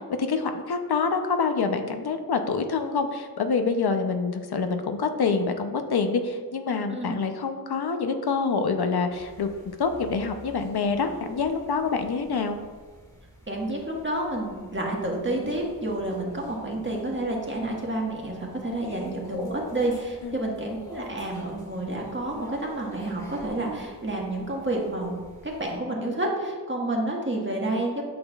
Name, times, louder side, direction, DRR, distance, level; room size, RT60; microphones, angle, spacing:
voice 1, 0.2-9.5 9.8-12.6 20.2-20.4, left 5 dB, 75° left, 6 dB, 0.6 m, -26 dB
sound 1, 9.1-25.8, equal, 10° left, 1.7 m, -46 dB
voice 2, 13.5-25.1 25.4-28.0, right 1 dB, 30° right, -1 dB, 1.5 m, -29 dB
8.5 x 6.2 x 2.3 m, 1.5 s
wide cardioid pair, 65°, 39 cm